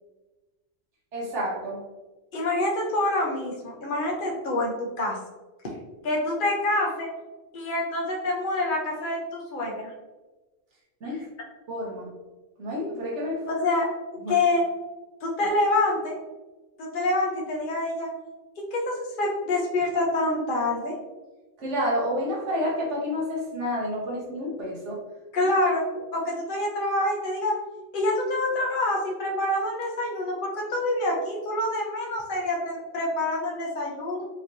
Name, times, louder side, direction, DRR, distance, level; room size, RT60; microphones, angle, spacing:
voice 1, 1.1-1.8 11.0-11.3 11.7-12.1 12.6-13.4 14.2-14.3 21.6-25.0, equal, 70° right, -4 dB, 1.5 m, -29 dB
voice 2, 2.3-5.2 6.0-7.1 7.5-9.9 13.6-13.9 14.3-14.6 15.2-16.2 16.8-18.1 18.6-20.9 25.3-25.8 26.1-27.5 27.9-34.2, left 2 dB, 45° left, -1 dB, 1.0 m, -26 dB
5.0 x 3.1 x 2.7 m, 1.2 s
omnidirectional pair, 1.3 m